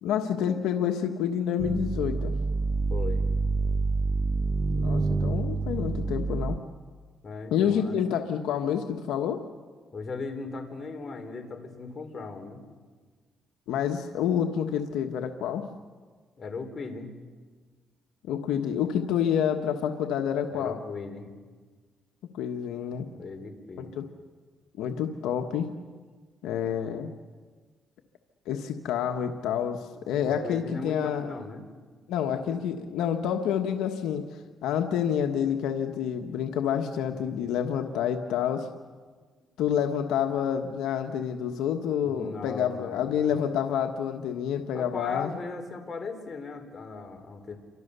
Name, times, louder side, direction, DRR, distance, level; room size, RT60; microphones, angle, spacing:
voice 1, 0.0-2.3 4.7-6.6 7.5-9.4 13.7-15.7 18.3-20.8 22.3-23.1 23.8-24.1 24.8-25.7 26.4-27.1 28.5-31.3 32.1-38.7 39.6-45.3, left 8 dB, 90° left, 5 dB, 1.3 m, -28 dB
sound 1, 1.6-6.6, right 3 dB, 25° right, 1.0 m, -27 dB
voice 2, 2.9-3.2 7.2-8.1 9.9-12.6 16.4-17.1 20.5-21.3 23.1-23.9 30.2-31.6 42.0-43.3 44.7-47.6, left 4 dB, 40° left, 5 dB, 4.4 m, -38 dB
29.0 x 25.0 x 6.9 m, 1.5 s
cardioid pair, 90°, 0 cm